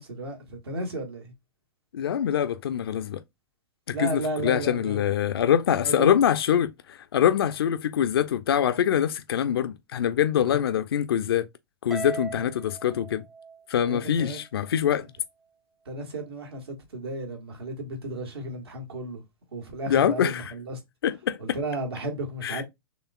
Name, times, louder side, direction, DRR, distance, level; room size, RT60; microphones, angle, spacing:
voice 1, 0.0-1.3 3.9-5.2 5.8-6.2 10.5-10.6 13.9-14.4 15.8-19.2 19.5-20.8 21.4-22.6, right 1 dB, 75° right, 1.6 m, -33 dB
voice 2, 1.9-3.2 3.9-11.5 11.8-13.2 13.7-15.1 19.9-20.5 21.0-21.4 22.4-22.6, left 9 dB, 70° left, 0.4 m, -24 dB
Harp, 11.9-14.4, right 4 dB, ahead, 0.3 m, -39 dB
5.8 x 3.3 x 2.3 m
figure-of-eight pair, 105°, 13 cm